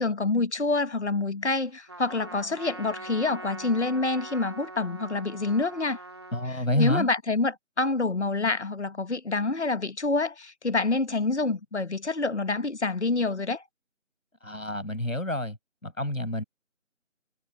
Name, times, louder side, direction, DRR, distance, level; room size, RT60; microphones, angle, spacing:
voice 1, 0.0-6.0 6.7-13.6, left 3 dB, 60° left, 1.3 m, -27 dB
Trumpet, 1.9-6.6, right 2 dB, 20° right, 2.2 m, -42 dB
voice 2, 6.3-7.1 14.4-15.6 15.8-16.4, left 1 dB, 85° left, 6.3 m, -28 dB
figure-of-eight pair, 170°, 39 cm